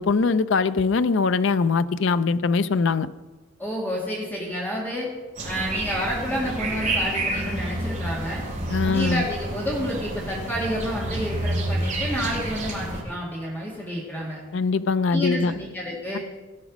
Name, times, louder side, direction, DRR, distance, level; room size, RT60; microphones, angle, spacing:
voice 1, 0.0-3.1 8.7-9.3 14.5-15.5, left 4 dB, 60° left, 13 dB, 0.4 m, -22 dB
voice 2, 3.6-5.1 5.4-8.4 8.8-14.4 15.1-16.2, equal, 10° left, -4 dB, 2.1 m, -29 dB
sound 1, 5.4-13.0, right 1 dB, 35° right, 2.5 m, -29 dB
16.0 x 6.2 x 6.1 m, 1.2 s
head